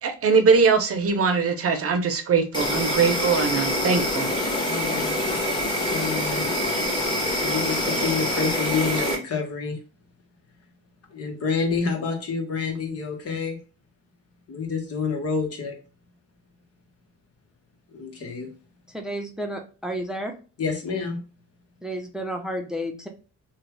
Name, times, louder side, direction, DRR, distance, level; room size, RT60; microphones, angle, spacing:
voice 1, 0.0-4.3, right 5 dB, 50° right, 0.7 m, -21 dB
Insect, 2.5-9.1, left 1 dB, 15° left, 1.6 m, -25 dB
voice 2, 4.6-5.6 5.9-6.5 7.4-9.8 11.1-13.6 14.5-15.8 17.9-18.5 20.6-21.2, left 5 dB, 50° left, 1.2 m, -28 dB
voice 3, 18.9-20.3 21.8-23.1, equal, ahead, 0.7 m, -31 dB
3.1 x 2.3 x 3.2 m
cardioid pair, 90°, 30 cm